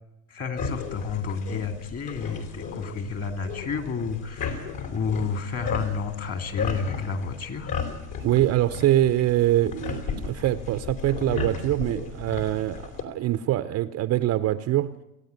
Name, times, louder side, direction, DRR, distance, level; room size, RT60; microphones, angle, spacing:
voice 1, 0.3-7.8, left 5 dB, 35° left, 2.7 m, -31 dB
sound 1, 0.6-13.0, left 5 dB, 55° left, 4.1 m, -35 dB
voice 2, 8.2-14.9, right 13 dB, 35° right, 0.7 m, -24 dB
29.5 x 9.9 x 9.5 m
supercardioid pair, 110°, 44 cm